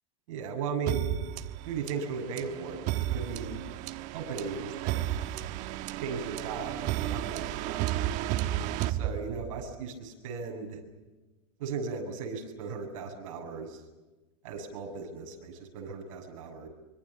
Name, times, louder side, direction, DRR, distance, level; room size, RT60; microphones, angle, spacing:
voice 1, 0.3-1.1 1.7-3.6 4.1-5.0 6.0-7.9 8.9-10.8 11.6-13.8 14.4-16.7, right 5 dB, 65° right, 3 dB, 7.5 m, -37 dB
sound 1, 0.9-9.7, right 13 dB, 45° right, 1.3 m, -33 dB
25.5 x 25.0 x 7.4 m, 1.1 s
supercardioid pair, 145°, 17 cm